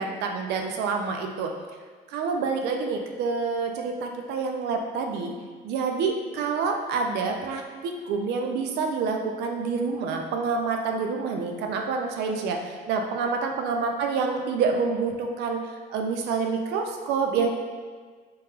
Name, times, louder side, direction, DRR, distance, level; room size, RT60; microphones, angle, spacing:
voice 1, 0.0-1.5 2.1-5.3 5.6-15.6 15.9-17.5, right 5 dB, 80° right, 3 dB, 0.5 m, -27 dB
3.1 x 2.9 x 3.5 m, 1.5 s
cardioid pair, 110°, 17 cm